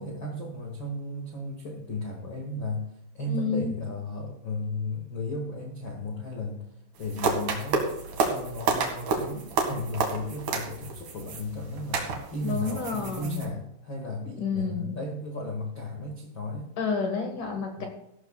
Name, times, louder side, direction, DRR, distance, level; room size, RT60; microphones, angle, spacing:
voice 1, 0.0-6.7 7.0-7.9 8.3-16.7 17.8-17.9, left 1 dB, 75° left, 0 dB, 1.1 m, -35 dB
voice 2, 3.3-3.7 12.4-13.4 14.4-14.9 16.8-17.9, left 5 dB, 60° left, 2 dB, 2.3 m, -29 dB
sound 1, 7.0-13.5, right 4 dB, 55° right, 2.7 m, -30 dB
15.5 x 12.5 x 2.3 m, 0.82 s
omnidirectional pair, 5.6 m